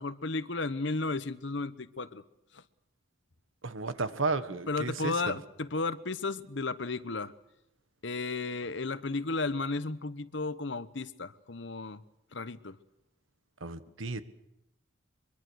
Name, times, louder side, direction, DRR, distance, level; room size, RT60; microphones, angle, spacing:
voice 1, 0.0-2.2 2.5-2.6 4.5-7.3 8.0-12.0 12.3-12.8, left 3 dB, 70° left, 1.0 m, -34 dB
voice 2, 3.6-5.4 13.6-14.2, right 3 dB, 85° right, 1.5 m, -33 dB
23.5 x 23.5 x 6.4 m
head